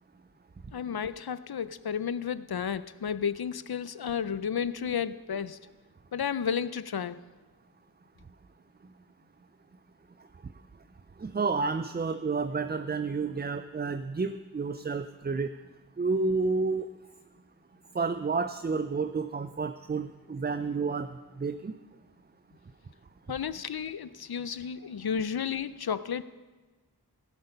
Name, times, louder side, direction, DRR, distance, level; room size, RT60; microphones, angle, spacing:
voice 1, 0.7-5.6 6.1-7.2 23.3-26.2, left 7 dB, 70° left, 14 dB, 0.6 m, -32 dB
voice 2, 11.2-15.5 16.0-16.9 17.9-21.1 21.4-21.7, right 4 dB, 25° right, 10 dB, 0.4 m, -30 dB
16.5 x 8.1 x 5.4 m, 1.3 s
wide cardioid pair, 45°, 39 cm